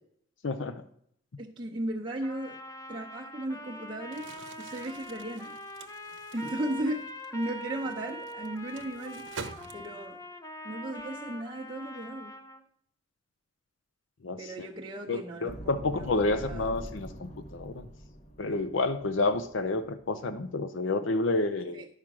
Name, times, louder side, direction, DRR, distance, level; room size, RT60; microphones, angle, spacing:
voice 1, 0.4-0.8 14.2-14.5 15.1-17.8 18.4-21.8, left 3 dB, 90° left, 10 dB, 0.6 m, -29 dB
voice 2, 1.4-2.6 2.9-4.3 4.6-5.5 6.3-7.1 7.3-9.3 9.7-10.2 10.6-12.3 14.4-16.7 21.7-21.9, right 1 dB, 30° right, -5 dB, 0.8 m, -36 dB
Trumpet, 2.2-12.6, equal, 20° left, 0.6 m, -43 dB
Crumpling crinkling, 4.0-10.2, right 4 dB, 85° right, 0.8 m, -47 dB
sound 1, 15.5-20.5, equal, 35° left, 1.1 m, -45 dB
10.5 x 4.9 x 6.0 m, 0.68 s
head